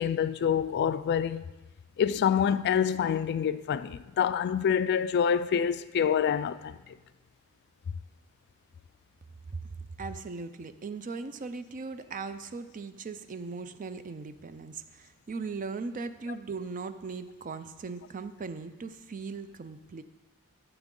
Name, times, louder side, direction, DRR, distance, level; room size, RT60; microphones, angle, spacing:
voice 1, 0.0-1.4 2.0-6.7, left 8 dB, 50° left, 0.3 m, -26 dB
voice 2, 10.0-20.0, right 4 dB, 35° right, 0.4 m, -39 dB
13.5 x 7.0 x 3.8 m
head